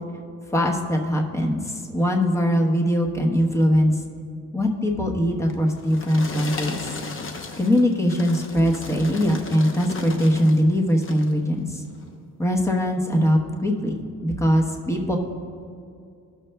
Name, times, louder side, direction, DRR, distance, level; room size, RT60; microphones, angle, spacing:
voice 1, 0.5-3.9 4.5-6.8 7.6-11.8 12.4-15.2, equal, 10° left, 1 dB, 1.1 m, -21 dB
sound 1, 5.5-10.6 10.9-11.4 11.9-12.1, left 3 dB, 45° left, 0.9 m, -36 dB
16.0 x 6.5 x 2.3 m, 2.3 s
cardioid pair, 90°, 30 cm